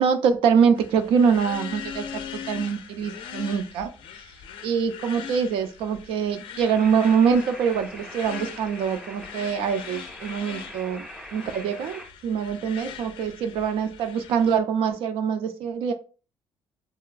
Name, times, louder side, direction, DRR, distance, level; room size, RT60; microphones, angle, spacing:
voice 1, 0.0-3.9 4.6-11.1 11.3-15.9, right 6 dB, 85° right, 9 dB, 0.4 m, -24 dB
sound 1, 0.7-14.6, left 7 dB, 75° left, 0.4 m, -41 dB
sound 2, 6.6-12.1, equal, 5° right, 0.4 m, -43 dB
2.9 x 2.2 x 2.3 m, 0.35 s
cardioid pair, 105°, 9 cm